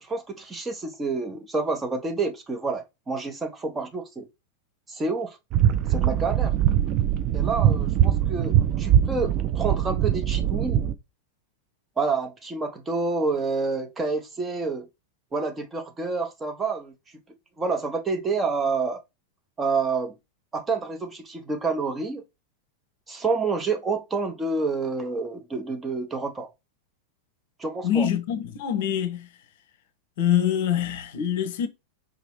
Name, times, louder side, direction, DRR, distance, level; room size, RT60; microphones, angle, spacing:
voice 1, 0.0-4.3 4.9-5.4 5.9-6.6 7.3-10.8 12.0-14.9 15.3-16.9 17.6-19.0 19.6-20.1 20.5-22.2 23.1-26.5 27.6-28.1, right 4 dB, 15° right, 0.8 m, -28 dB
sound 1, 5.5-10.9, right 10 dB, 35° right, 0.4 m, -22 dB
voice 2, 27.8-29.3 30.2-31.7, left 9 dB, 55° left, 0.7 m, -25 dB
4.9 x 2.9 x 3.0 m
figure-of-eight pair, 90°, 0 cm